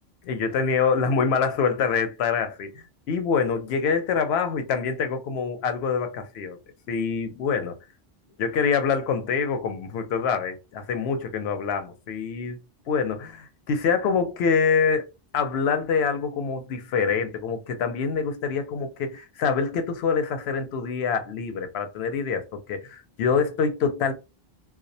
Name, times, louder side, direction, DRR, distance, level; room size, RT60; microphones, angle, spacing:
voice 1, 0.3-6.6 6.9-7.8 8.4-12.6 12.9-15.1 15.3-24.1, left 5 dB, 90° left, 0.8 m, -25 dB
2.3 x 2.1 x 2.6 m
omnidirectional pair, 1.0 m